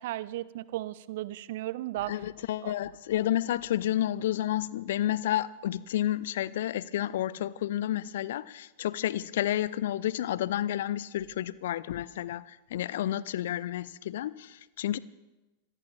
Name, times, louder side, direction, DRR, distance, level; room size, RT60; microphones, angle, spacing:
voice 1, 0.0-2.2 2.6-2.7, right 15 dB, 55° right, 18 dB, 0.6 m, -35 dB
voice 2, 2.1-15.0, left 12 dB, 55° left, 19 dB, 0.5 m, -30 dB
26.5 x 20.5 x 2.5 m, 1.1 s
figure-of-eight pair, 90°, 0 cm